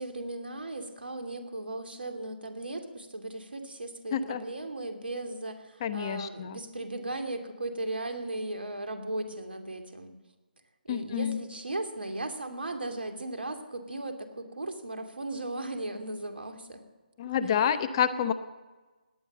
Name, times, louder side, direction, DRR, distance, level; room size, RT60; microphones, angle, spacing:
voice 1, 0.0-10.1 10.8-16.8 17.4-17.6, right 2 dB, 80° right, 6 dB, 2.7 m, -37 dB
voice 2, 4.1-4.4 5.8-6.6 10.9-11.4 17.2-18.3, left 8 dB, 30° left, 13 dB, 0.8 m, -28 dB
18.0 x 10.0 x 7.4 m, 1.2 s
figure-of-eight pair, 150°, 5 cm